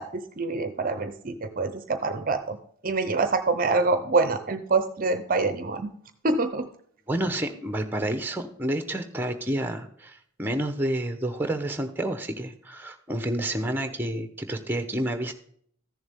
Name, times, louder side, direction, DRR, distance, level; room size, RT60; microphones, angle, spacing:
voice 1, 0.0-2.6 2.8-5.9 6.2-6.7, right 3 dB, 40° right, 9 dB, 0.7 m, -26 dB
voice 2, 7.1-15.3, right 1 dB, 10° right, 7 dB, 0.9 m, -29 dB
14.0 x 7.1 x 3.6 m, 0.62 s
head